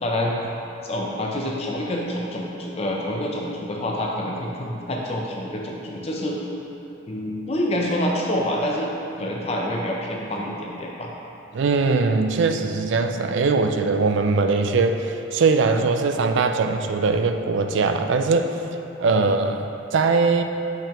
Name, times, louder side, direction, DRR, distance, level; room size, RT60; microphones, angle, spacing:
voice 1, 0.0-0.4 0.8-6.4 7.1-8.9 9.2-11.1 19.2-19.3, left 1 dB, 30° left, -2 dB, 0.5 m, -27 dB
voice 2, 11.5-18.5 19.0-20.4, right 4 dB, 65° right, 6 dB, 0.4 m, -21 dB
6.7 x 5.9 x 2.9 m, 2.9 s
head